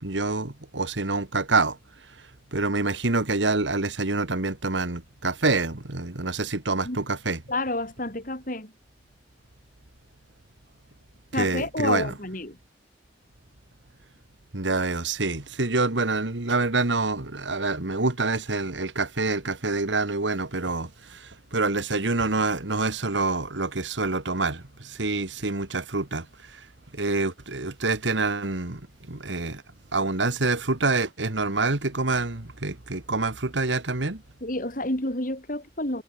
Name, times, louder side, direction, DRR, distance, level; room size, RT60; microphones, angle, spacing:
voice 1, 0.0-1.8 2.5-7.4 11.3-12.1 14.5-26.6 26.9-28.8 29.1-29.6 29.9-34.2, right 3 dB, 85° right, 2.0 m, -26 dB
voice 2, 7.5-8.7 11.3-12.6 34.4-36.0, left 2 dB, 45° left, 5.3 m, -29 dB
head